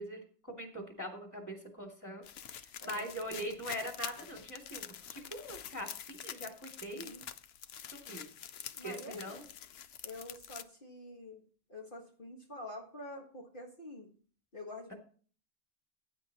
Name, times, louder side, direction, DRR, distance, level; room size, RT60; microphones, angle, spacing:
voice 1, 0.0-2.2 2.5-7.1 7.9-8.2 8.8-9.4, equal, 15° left, 1 dB, 2.6 m, -42 dB
sound 1, 2.2-10.6, left 9 dB, 75° left, 0.9 m, -47 dB
voice 2, 2.8-3.1 6.9-7.3 8.7-9.4 10.0-11.4 11.7-14.1 14.5-14.9, left 1 dB, 55° left, -1 dB, 1.9 m, -47 dB
15.5 x 9.5 x 3.0 m, 0.43 s
omnidirectional pair, 1.1 m